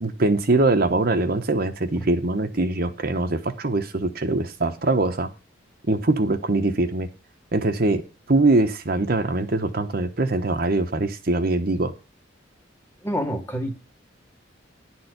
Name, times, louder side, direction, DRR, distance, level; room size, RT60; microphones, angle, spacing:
voice 1, 0.0-5.3 5.9-7.1 7.5-8.0 8.3-11.9, right 2 dB, 50° right, 6 dB, 1.0 m, -22 dB
voice 2, 13.0-13.7, equal, 10° left, 6 dB, 1.6 m, -27 dB
11.0 x 4.4 x 8.0 m, 0.32 s
head